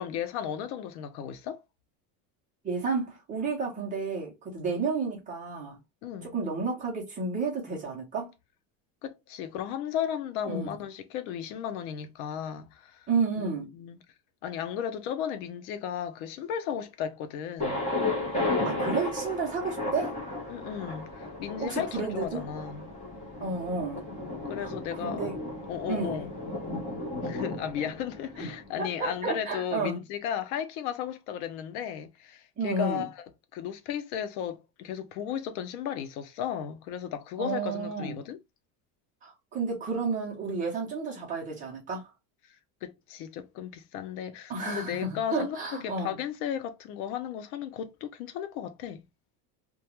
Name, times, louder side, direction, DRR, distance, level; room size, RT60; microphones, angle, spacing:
voice 1, 0.0-1.6 6.0-6.4 9.0-13.1 13.4-14.0 14.4-17.9 20.5-22.9 24.5-25.2 25.7-26.4 27.2-33.2 33.5-38.4 42.8-49.0, left 9 dB, 80° left, 0.6 m, -35 dB
voice 2, 2.6-5.8 6.3-8.3 10.5-10.7 13.1-13.7 18.6-20.2 21.6-22.4 23.4-24.1 24.6-25.4 25.9-26.2 28.4-28.5 28.8-30.0 32.6-33.1 37.4-38.2 39.2-42.1 44.5-46.1, right 4 dB, 20° right, 0.6 m, -31 dB
Thunder, 17.6-29.4, left 2 dB, 15° left, 0.8 m, -34 dB
2.3 x 2.2 x 2.9 m
cardioid pair, 175°, 43 cm